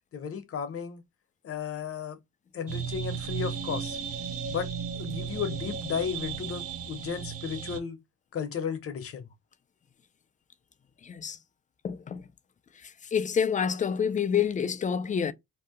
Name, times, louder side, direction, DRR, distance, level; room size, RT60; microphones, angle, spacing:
voice 1, 0.1-1.0 1.4-2.2 2.5-4.0 4.4-4.7 5.0-8.0 8.3-9.3, left 7 dB, 50° left, 0.8 m, -34 dB
sound 1, 2.7-7.8, right 7 dB, 50° right, 0.6 m, -35 dB
voice 2, 11.0-11.4 11.8-12.2 13.1-15.3, left 7 dB, 25° left, 0.3 m, -27 dB
2.7 x 2.1 x 3.6 m
cardioid pair, 90°, 30 cm